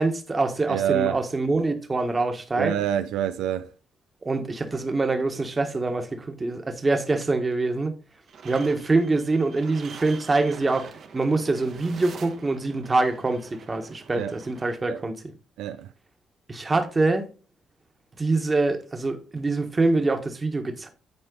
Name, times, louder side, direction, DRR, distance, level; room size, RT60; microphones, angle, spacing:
voice 1, 0.0-2.7 4.2-8.0 8.4-15.1 16.5-17.3 18.2-20.9, right 3 dB, 25° right, 1.4 m, -25 dB
voice 2, 0.7-1.2 2.5-3.7 14.1-14.3 14.9-15.0 15.6-15.9, right 11 dB, 90° right, 0.5 m, -26 dB
sound 1, 8.3-14.7, right 6 dB, 65° right, 1.5 m, -45 dB
9.7 x 4.3 x 3.9 m
cardioid pair, 90°, 0 cm